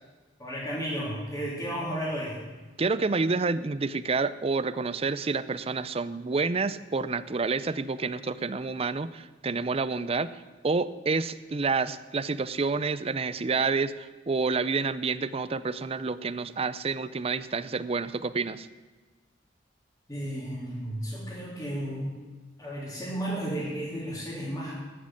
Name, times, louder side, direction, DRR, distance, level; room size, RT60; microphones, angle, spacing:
voice 1, 0.4-2.4 20.1-22.1 22.6-24.8, equal, 15° left, -10 dB, 3.3 m, -33 dB
voice 2, 2.8-18.7, right 4 dB, 35° right, 14 dB, 0.5 m, -29 dB
13.5 x 6.5 x 9.5 m, 1.3 s
head